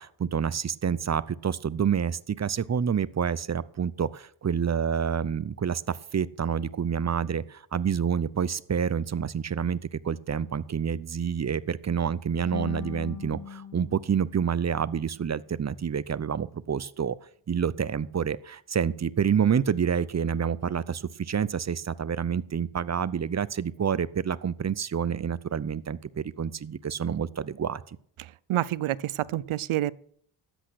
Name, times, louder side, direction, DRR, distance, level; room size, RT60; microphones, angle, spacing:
voice 1, 0.0-17.2 17.5-28.0, right 7 dB, 35° right, 19 dB, 0.6 m, -28 dB
sound 1, 12.5-15.6, left 7 dB, 35° left, 0.9 m, -42 dB
voice 2, 28.2-29.9, right 14 dB, 85° right, 21 dB, 0.6 m, -28 dB
12.5 x 8.3 x 6.3 m, 0.62 s
cardioid pair, 60°, 48 cm